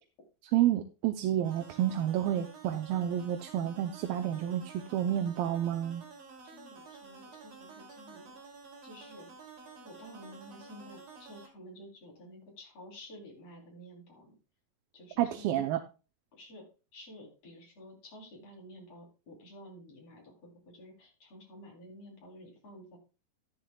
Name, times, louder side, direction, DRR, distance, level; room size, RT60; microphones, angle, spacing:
voice 1, 0.5-6.0 15.2-15.8, right 11 dB, 80° right, 6 dB, 2.5 m, -30 dB
sound 1, 1.4-11.5, right 4 dB, 55° right, 4.2 m, -51 dB
voice 2, 6.4-8.3 8.8-9.3 9.8-14.4 14.9-15.6 16.3-16.7 16.9-23.0, equal, 45° left, -1 dB, 4.3 m, -51 dB
13.5 x 11.0 x 2.3 m, 0.32 s
omnidirectional pair, 4.2 m